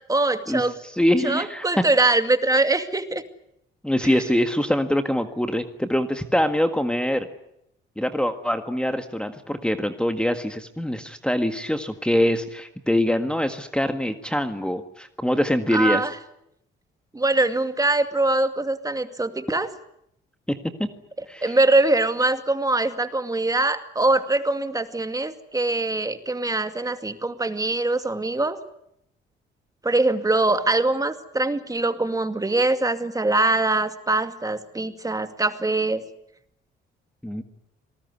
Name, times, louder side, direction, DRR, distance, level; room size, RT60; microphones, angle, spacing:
voice 1, 0.1-0.8 1.2-3.2 4.0-4.2 15.7-16.1 17.1-19.7 21.4-28.6 29.8-36.0, right 2 dB, 15° right, 9 dB, 2.2 m, -23 dB
voice 2, 1.0-1.8 3.8-7.3 8.0-16.1 20.5-20.6 21.3-21.5 37.2-37.4, left 1 dB, 5° left, 8 dB, 1.7 m, -24 dB
26.0 x 19.5 x 9.6 m, 0.79 s
cardioid pair, 90°, 20 cm